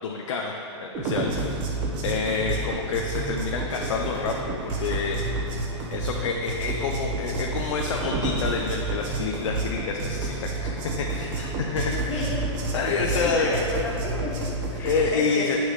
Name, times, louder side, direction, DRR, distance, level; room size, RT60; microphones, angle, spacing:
voice 1, 0.0-1.3 2.0-5.2 5.9-12.4 12.7-13.6 14.8-15.6, left 5 dB, 75° left, 0 dB, 0.8 m, -28 dB
sound 1, 0.9-15.1, right 2 dB, 30° right, 1.2 m, -30 dB
voice 2, 11.7-12.6 13.1-15.4, left 1 dB, 15° left, -2 dB, 1.1 m, -32 dB
15.0 x 6.3 x 3.2 m, 2.8 s
hypercardioid pair, 155°, 16 cm